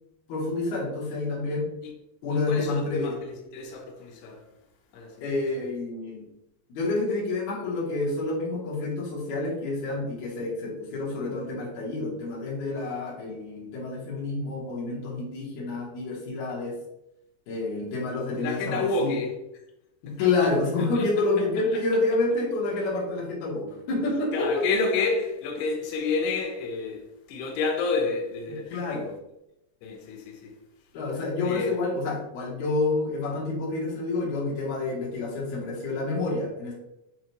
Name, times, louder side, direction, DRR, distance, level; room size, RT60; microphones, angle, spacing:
voice 1, 0.3-1.7 2.2-3.1 5.2-6.3 6.7-16.8 17.5-19.2 20.0-24.7 28.7-29.1 30.9-36.7, left 3 dB, 65° left, 2.0 m, -28 dB
voice 2, 2.5-4.4 4.9-5.2 18.4-19.4 20.1-20.2 21.0-21.1 24.3-29.1 29.8-30.6 31.4-31.8, left 3 dB, 85° left, 2.9 m, -29 dB
6.7 x 2.5 x 2.9 m
omnidirectional pair, 4.9 m